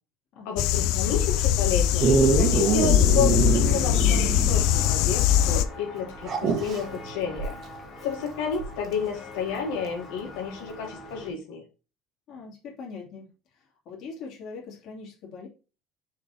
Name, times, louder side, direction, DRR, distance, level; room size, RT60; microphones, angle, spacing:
voice 1, 0.5-7.6 8.0-11.6, left 6 dB, 90° left, 0 dB, 2.0 m, -31 dB
sound 1, 0.6-5.7, left 11 dB, 65° left, 0.5 m, -22 dB
Dog, 2.0-4.7 5.0-5.1 6.2-6.8 8.9-9.0, right 5 dB, 35° right, 1.3 m, -24 dB
Walk footsteps, 4.6-11.3, equal, 20° left, 1.9 m, -42 dB
voice 2, 12.3-13.3 13.8-15.5, left 4 dB, 45° left, -2 dB, 2.7 m, -41 dB
6.7 x 4.2 x 4.3 m, 0.32 s
cardioid pair, 165°, 0 cm